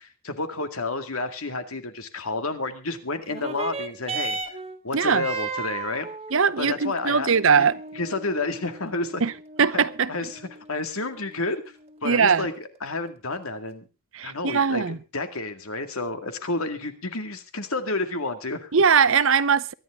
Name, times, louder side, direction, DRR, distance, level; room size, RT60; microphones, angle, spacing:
voice 1, 0.0-4.4 4.8-6.1 6.6-7.7 7.9-9.2 9.7-9.8 10.1-10.4 10.7-11.6 12.0-12.5 12.8-13.9 14.2-18.7, left 2 dB, 75° left, 2.2 m, -30 dB
sound 1, 3.3-12.2 13.1-13.2, right 3 dB, 25° right, 1.6 m, -36 dB
voice 2, 4.9-5.2 6.3-7.7 9.2-9.3 9.6-10.1 12.0-12.5 14.1-15.0 18.7-19.7, right 6 dB, 65° right, 0.7 m, -20 dB
23.5 x 10.5 x 3.6 m
head